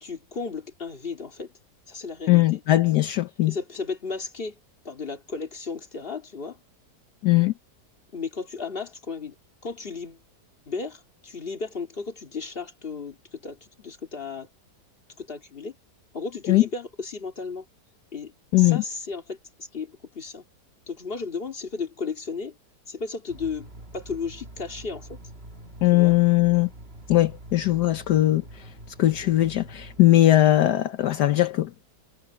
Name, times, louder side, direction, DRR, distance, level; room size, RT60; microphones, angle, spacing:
voice 1, 0.0-1.5 1.9-2.6 3.5-4.6 4.8-6.6 8.1-9.3 9.6-10.2 10.7-14.5 15.2-15.7 16.1-17.6 18.1-20.4 20.9-22.6 22.9-23.7 23.9-25.2 25.9-26.2, left 4 dB, 30° left, 2.5 m, -34 dB
voice 2, 2.3-3.5 7.2-7.5 16.5-16.6 18.5-18.8 25.8-26.7 27.1-28.4 29.0-31.9, left 16 dB, 75° left, 1.4 m, -20 dB
sound 1, 23.3-30.0, right 1 dB, 35° right, 2.4 m, -45 dB
omnidirectional pair, 1.8 m